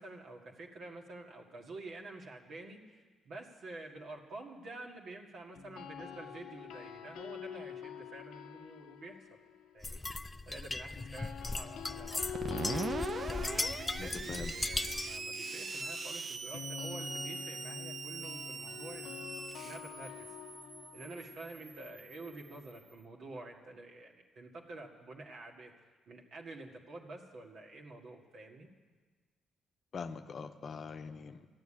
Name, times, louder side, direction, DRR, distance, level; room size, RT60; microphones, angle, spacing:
voice 1, 0.0-9.4 9.7-10.0 10.5-12.5 13.3-20.3 20.9-25.7 26.1-28.7, right 2 dB, 65° right, 0 dB, 1.9 m, -49 dB
sound 1, 5.5-9.7 10.9-22.8, left 9 dB, 85° left, 0.6 m, -46 dB
sound 2, 9.8-15.2, left 2 dB, 15° left, 0.3 m, -38 dB
Screech, 12.3-22.8, right 4 dB, 40° right, 0.7 m, -42 dB
voice 2, 14.0-14.5 29.9-31.5, left 5 dB, 50° left, 8 dB, 0.8 m, -43 dB
13.5 x 9.5 x 8.8 m, 1.4 s
cardioid pair, 90°, 0 cm